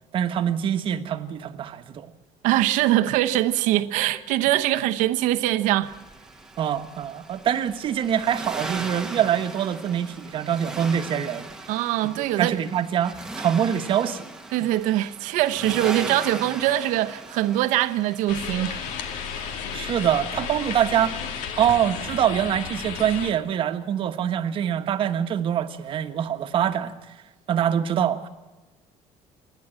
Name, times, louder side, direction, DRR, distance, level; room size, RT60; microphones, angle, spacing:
voice 1, 0.1-2.1 6.6-11.5 12.2-14.3 19.3-19.4 19.7-21.2 21.6-26.9 27.5-28.3, right 9 dB, 40° right, 1.3 m, -24 dB
voice 2, 2.4-5.9 11.7-12.6 14.5-18.8, right 14 dB, 85° right, 1.0 m, -23 dB
Accelerating revving vroom, 5.8-19.9, right 2 dB, 5° right, 1.2 m, -39 dB
sound 1, 18.3-23.3, left 7 dB, 85° left, 2.2 m, -33 dB
28.5 x 10.5 x 8.9 m
cardioid pair, 170°, 13 cm